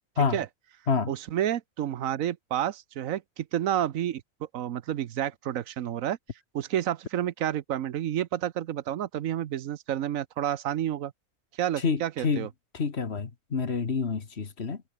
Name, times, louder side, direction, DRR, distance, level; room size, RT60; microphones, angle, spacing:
voice 1, 1.1-4.2 4.5-6.2 6.5-11.1 11.6-12.5, right 11 dB, 85° right, 1.2 m, -30 dB
voice 2, 11.8-12.5 12.7-14.8, left 5 dB, 55° left, 1.8 m, -28 dB
omnidirectional pair, 1.4 m